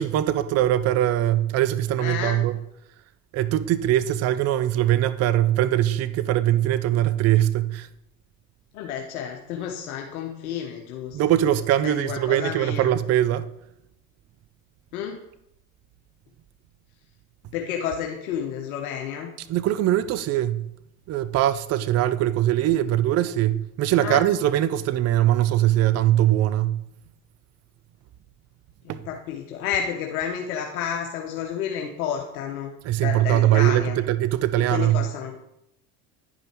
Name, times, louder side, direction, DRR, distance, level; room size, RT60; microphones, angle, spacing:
voice 1, 0.0-2.6 3.3-7.9 11.1-13.5 19.5-20.6 21.1-26.8 28.9-29.0 32.8-35.0, right 13 dB, 35° right, 0.5 m, -21 dB
voice 2, 2.0-2.4 8.7-11.2 11.8-12.9 14.9-15.2 17.5-19.3 24.0-24.2 28.8-32.7 33.0-34.0 34.7-35.3, left 8 dB, 75° left, 1.1 m, -30 dB
10.5 x 5.4 x 4.5 m
hypercardioid pair, 80°, 43 cm